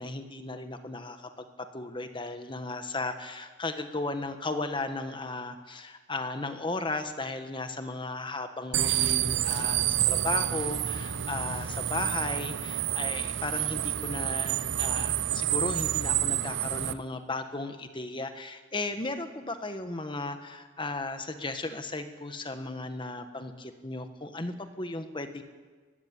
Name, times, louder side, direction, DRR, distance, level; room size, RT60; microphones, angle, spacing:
voice 1, 0.0-25.4, left 2 dB, 25° left, 8 dB, 1.5 m, -35 dB
sound 1, 8.7-16.9, right 11 dB, 70° right, 0.8 m, -29 dB
21.0 x 15.5 x 9.0 m, 1.4 s
head